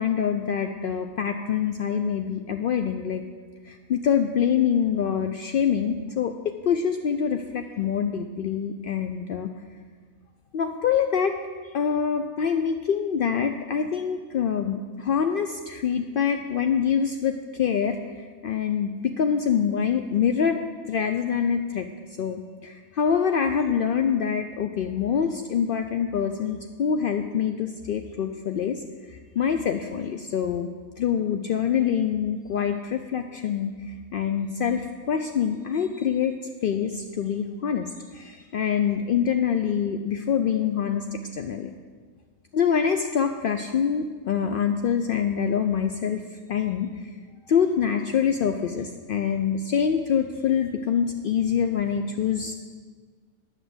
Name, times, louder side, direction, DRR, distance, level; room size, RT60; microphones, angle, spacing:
voice 1, 0.0-3.2 3.7-9.5 10.5-11.4 11.7-21.9 22.2-30.7 31.0-36.3 36.6-37.9 38.1-41.7 42.5-46.2 46.5-46.9 47.5-52.5, left 7 dB, 75° left, 6 dB, 0.5 m, -25 dB
10.0 x 6.2 x 7.8 m, 1.5 s
omnidirectional pair, 1.5 m